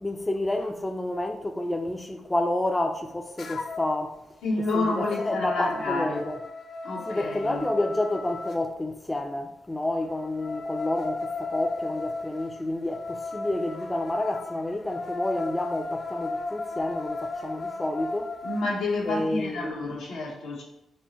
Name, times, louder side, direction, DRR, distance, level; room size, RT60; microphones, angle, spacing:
voice 1, 0.0-4.2 4.6-6.4 7.1-18.3 19.0-19.9, left 1 dB, 15° left, 0.4 m, -29 dB
sound 1, 3.4-4.0 4.4-8.6 10.1-18.7, left 3 dB, 60° left, 0.6 m, -35 dB
voice 2, 4.4-6.3 6.8-7.6 18.4-20.6, left 2 dB, 90° left, 1.1 m, -29 dB
4.5 x 2.1 x 4.1 m
supercardioid pair, 60°, 0 cm